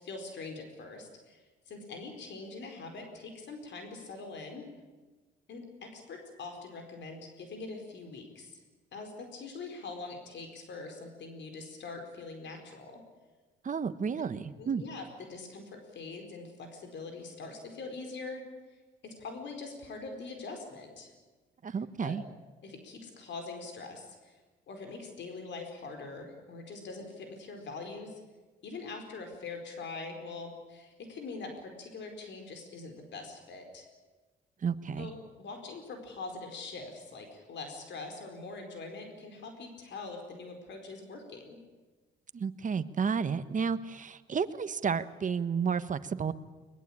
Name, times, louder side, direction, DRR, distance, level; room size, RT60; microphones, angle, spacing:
voice 1, 0.0-4.7 5.5-8.6 8.9-13.0 14.2-14.3 14.6-18.4 19.0-21.1 22.0-22.2 22.6-24.4 24.7-28.2 28.6-33.9 35.0-41.6, left 3 dB, 65° left, 4 dB, 4.7 m, -43 dB
voice 2, 13.6-14.8 21.6-22.2 34.6-35.1 42.3-46.3, right 6 dB, 40° right, 12 dB, 1.3 m, -31 dB
22.0 x 20.5 x 8.8 m, 1.3 s
cardioid pair, 90°, 20 cm